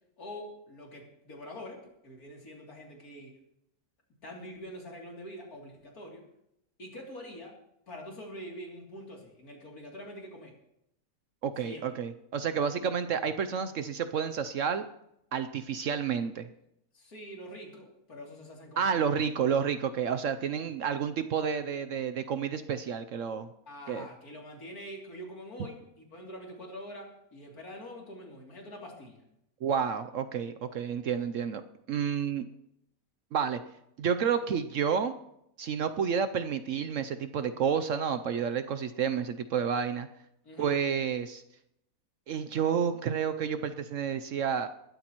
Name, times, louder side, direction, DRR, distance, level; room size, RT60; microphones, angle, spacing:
voice 1, 0.2-3.3 4.2-6.2 6.8-7.6 7.9-10.5 11.6-11.9 16.9-19.2 23.7-29.2 40.4-40.8, equal, 85° left, -1 dB, 3.5 m, -45 dB
voice 2, 11.4-14.9 15.3-16.5 18.8-23.5 23.9-24.1 29.6-31.6 31.9-32.4 33.3-33.6 34.0-35.1 35.6-40.1 40.6-41.4 42.3-44.7, right 7 dB, 65° right, 10 dB, 1.0 m, -30 dB
20.5 x 13.0 x 3.0 m, 0.79 s
omnidirectional pair, 1.5 m